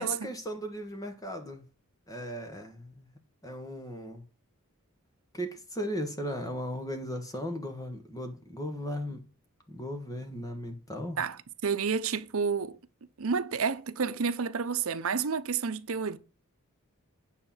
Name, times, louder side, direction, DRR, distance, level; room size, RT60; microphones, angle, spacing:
voice 1, 0.0-1.6 2.1-3.1 3.4-4.2 5.3-9.2 9.7-11.2, equal, 15° left, 1.2 m, -37 dB
voice 2, 11.2-12.8 13.2-16.2, right 5 dB, 65° right, 0.7 m, -30 dB
9.4 x 4.3 x 7.2 m
head